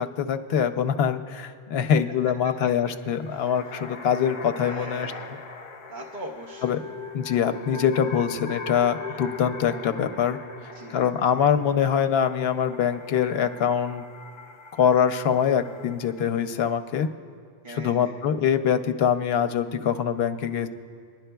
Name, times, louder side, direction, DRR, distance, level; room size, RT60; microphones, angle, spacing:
voice 1, 0.0-5.1 6.6-6.8 7.1-10.4 10.9-14.0 14.8-17.1 17.7-20.7, left 8 dB, 80° left, 9 dB, 0.8 m, -24 dB
sound 1, 3.0-16.4, left 3 dB, 40° left, 0.5 m, -40 dB
voice 2, 4.6-5.4 5.9-6.8 9.1-9.2 10.7-11.0 17.6-18.2, right 1 dB, 55° right, 0 dB, 0.9 m, -41 dB
23.0 x 11.0 x 2.2 m, 2.2 s
omnidirectional pair, 1.0 m